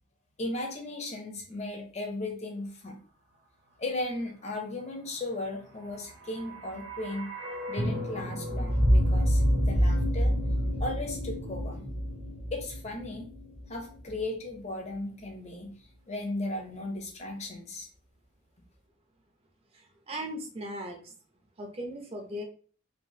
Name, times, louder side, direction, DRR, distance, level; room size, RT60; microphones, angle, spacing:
voice 1, 0.4-3.0 3.8-7.3 7.7-10.3 10.8-11.9 12.5-13.3 13.7-15.7 16.1-17.9, left 2 dB, 35° left, 2 dB, 0.6 m, -36 dB
sound 1, 6.1-14.2 14.5-14.6, equal, 55° right, 0.7 m, -28 dB
voice 2, 19.7-21.1 21.6-22.4, equal, 30° right, 2 dB, 0.5 m, -38 dB
3.3 x 2.4 x 2.7 m, 0.42 s
head